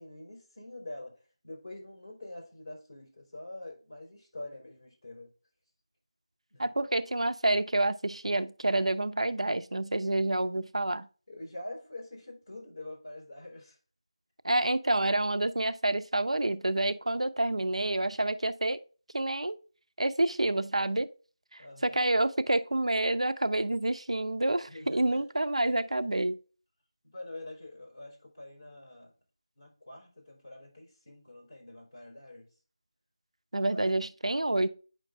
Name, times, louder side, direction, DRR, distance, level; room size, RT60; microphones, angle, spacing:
voice 1, 0.0-5.3 6.5-6.7 11.3-13.8 21.6-22.0 24.7-25.2 27.1-29.1 29.6-32.5 33.7-33.9, left 1 dB, 25° left, 3.9 m, -45 dB
voice 2, 6.6-11.1 14.4-18.8 19.1-19.6 20.0-21.1 21.5-26.4 33.5-34.7, right 2 dB, 90° right, 0.6 m, -28 dB
9.6 x 5.9 x 2.5 m
figure-of-eight pair, 175°, 3 cm